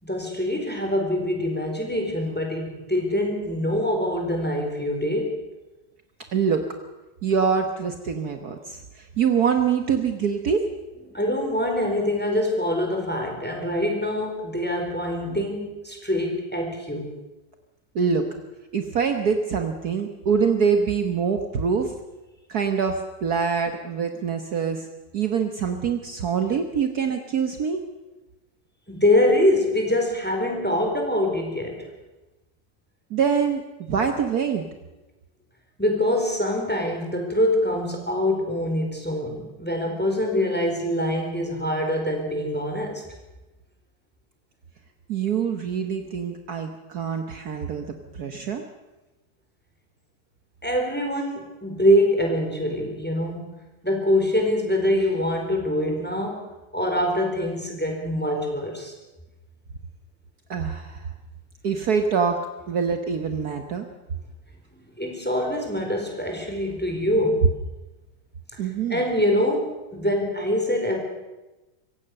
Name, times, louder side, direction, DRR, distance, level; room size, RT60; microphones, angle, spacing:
voice 1, 0.0-5.3 11.1-17.1 28.9-31.9 35.8-43.0 50.6-53.5 53.8-56.4 56.7-58.9 65.0-67.4 68.9-71.0, left 1 dB, 5° left, 1 dB, 4.4 m, -24 dB
voice 2, 6.3-6.6 7.2-10.7 17.9-18.3 18.7-21.9 22.5-24.9 25.1-27.8 33.1-33.6 33.9-34.6 45.1-48.6 60.5-61.1 61.6-62.4 62.7-63.9 68.6-69.0, right 6 dB, 55° right, 6 dB, 1.7 m, -24 dB
25.0 x 16.0 x 6.7 m, 1.1 s
omnidirectional pair, 2.0 m